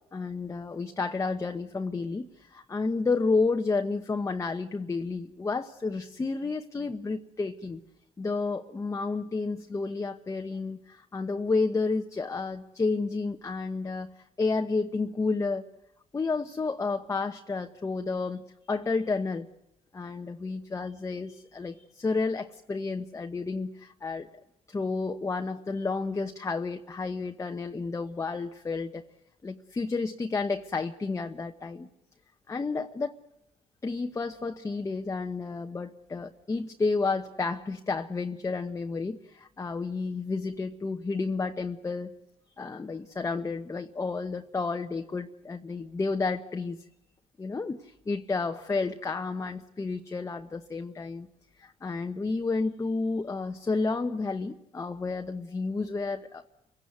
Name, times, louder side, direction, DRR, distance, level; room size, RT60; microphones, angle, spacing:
voice 1, 0.1-7.8 8.2-14.1 14.4-15.6 16.1-19.5 19.9-24.3 24.7-29.0 29.4-31.9 32.5-33.1 33.8-42.1 42.6-46.9 47.4-51.3 51.6-56.4, left 4 dB, 20° left, 5 dB, 1.0 m, -31 dB
28.5 x 17.0 x 9.4 m, 0.85 s
cardioid pair, 105°, 14 cm